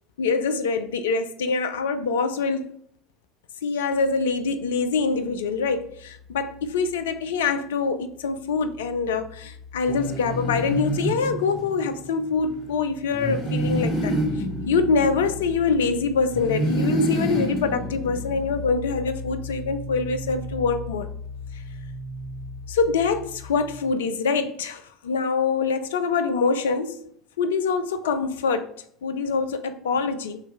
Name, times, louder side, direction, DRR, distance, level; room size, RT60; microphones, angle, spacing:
voice 1, 0.2-2.8 3.6-14.1 14.7-21.1 22.7-27.0 27.4-28.7 29.0-30.4, left 4 dB, 75° left, 0.4 m, -25 dB
sound 1, 3.9-7.7 8.0-23.8, left 2 dB, 80° right, 1.5 m, -39 dB
sound 2, 9.9-12.0 13.1-15.8 16.3-18.6, right 1 dB, 55° left, 1.6 m, -28 dB
4.1 x 2.9 x 4.5 m
figure-of-eight pair, 65°, 0 cm